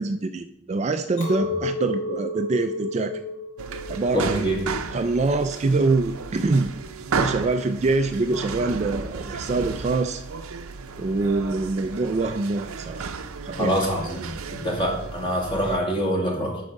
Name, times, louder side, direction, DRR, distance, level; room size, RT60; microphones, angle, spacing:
voice 1, 0.0-3.2 3.9-4.7 4.9-6.7 7.1-10.2 11.0-13.1 13.4-13.7, right 3 dB, 30° right, 8 dB, 0.3 m, -25 dB
Chink clink, 1.2-6.5, left 3 dB, 70° left, 3.3 m, -33 dB
sound 1, 3.6-15.8, right 5 dB, 80° right, 0.6 m, -33 dB
voice 2, 4.1-4.6 13.6-16.6, equal, 25° left, -1 dB, 2.1 m, -25 dB
11.0 x 4.8 x 5.3 m, 0.87 s
head